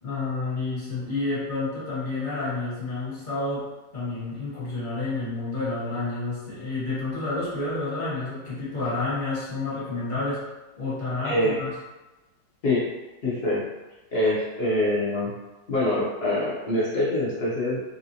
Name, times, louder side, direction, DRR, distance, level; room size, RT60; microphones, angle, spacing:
voice 1, 0.0-10.4 10.8-11.7, left 3 dB, 35° left, -10 dB, 1.1 m, -30 dB
voice 2, 11.2-11.6 12.6-12.9 13.2-13.6 14.1-15.3 15.7-17.8, left 1 dB, 50° left, -7 dB, 0.8 m, -24 dB
3.0 x 2.6 x 2.7 m, 1.1 s
omnidirectional pair, 1.8 m